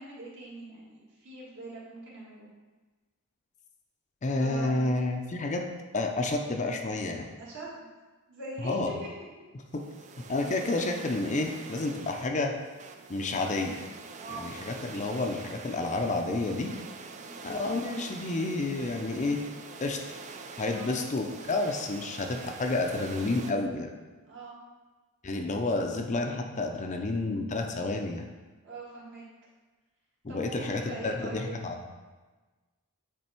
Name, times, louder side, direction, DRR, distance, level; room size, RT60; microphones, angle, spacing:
voice 1, 0.0-2.5 4.3-4.9 7.4-7.9 8.3-9.3 14.1-14.5 17.1-17.4 20.6-20.9 24.2-24.5 28.6-29.3 30.3-31.6, right 2 dB, 55° right, -6 dB, 2.0 m, -42 dB
voice 2, 4.2-5.6 5.9-7.3 8.6-8.9 9.7-9.8 10.3-12.5 13.1-13.8 14.3-16.7 17.4-19.4 19.8-20.0 20.6-23.9 25.2-28.3 30.2-31.8, left 2 dB, 30° left, 3 dB, 0.5 m, -30 dB
sound 1, 9.7-23.5, right 4 dB, 30° right, 0.4 m, -45 dB
8.6 x 3.4 x 4.4 m, 1.3 s
head